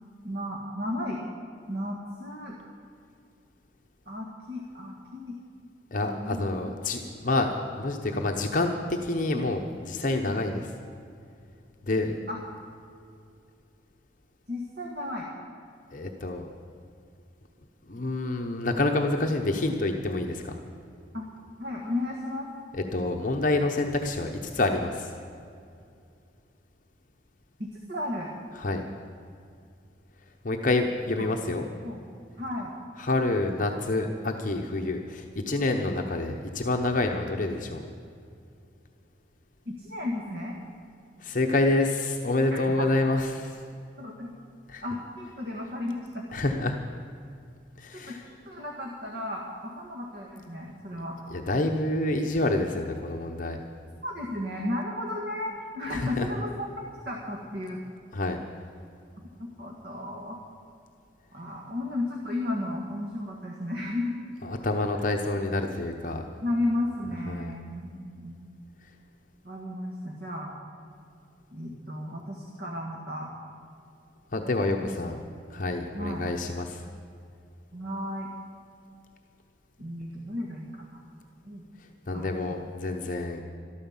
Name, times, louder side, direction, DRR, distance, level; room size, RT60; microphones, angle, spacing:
voice 1, 0.2-1.2 1.7-2.6 4.1-5.4 6.1-6.5 7.1-7.2 9.3-9.5 10.2-10.4 12.3-12.4 14.5-15.3 21.1-21.3 21.6-22.5 27.6-28.3 31.8-32.0 32.4-32.7 39.6-40.6 42.5-42.9 44.0-44.3 44.8-46.2 47.9-51.2 54.0-56.7 57.0-57.8 59.6-60.4 61.3-64.3 66.4-68.4 69.4-70.6 71.5-73.3 74.8-74.9 75.9-76.3 77.7-78.3 79.8-81.0 81.4-81.7 82.1-82.5, left 1 dB, 55° right, -1 dB, 1.7 m, -34 dB
voice 2, 5.9-7.5 7.8-10.6 11.8-12.1 15.9-16.5 17.9-20.6 22.7-25.1 28.6-28.8 30.4-31.6 33.0-37.8 41.2-43.6 44.7-44.8 46.3-46.8 47.8-48.2 51.3-53.6 55.9-56.3 58.1-58.4 64.4-66.2 67.3-67.5 74.3-75.2 75.5-76.8 82.1-83.4, left 2 dB, 45° left, 3 dB, 0.9 m, -27 dB
13.0 x 12.5 x 7.2 m, 2.4 s
head